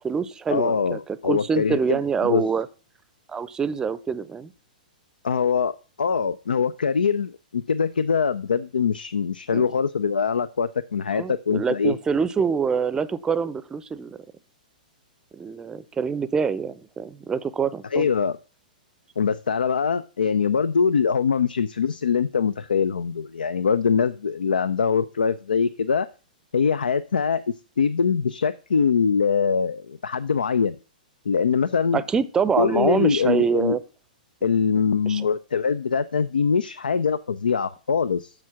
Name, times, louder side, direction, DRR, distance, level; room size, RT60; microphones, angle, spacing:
voice 1, 0.0-2.7 3.3-4.5 9.5-9.6 11.1-14.2 15.3-18.1 31.9-33.8 35.1-35.3, right 6 dB, 15° right, 16 dB, 0.6 m, -25 dB
voice 2, 0.5-2.4 5.2-11.9 17.9-18.4 19.2-26.1 26.5-30.7 31.3-32.0 32.6-33.8 34.4-38.3, left 6 dB, 80° left, 15 dB, 0.4 m, -23 dB
7.4 x 6.3 x 5.7 m, 0.37 s
hypercardioid pair, 115°, 5 cm